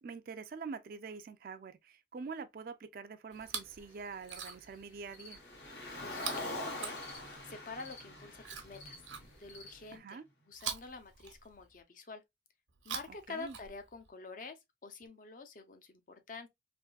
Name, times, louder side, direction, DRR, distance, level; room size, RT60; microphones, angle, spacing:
voice 1, 0.0-5.4 9.9-10.3 13.3-13.6, right 5 dB, 50° right, 0.3 m, -45 dB
sound 1, 3.3-10.0, left 1 dB, 85° left, 1.2 m, -57 dB
Chewing mastication, 3.3-3.8 4.2-4.8 6.1-7.5 8.4-9.7 10.5-11.8 12.7-14.1 15.0-15.1, right 7 dB, 90° right, 0.9 m, -44 dB
Car, 5.3-9.7, left 2 dB, 60° left, 1.1 m, -43 dB
voice 2, 6.0-7.0 7.5-9.0 9.4-10.2 10.5-12.2 12.8-16.5, left 4 dB, 45° left, 0.5 m, -47 dB
3.5 x 2.6 x 2.2 m
head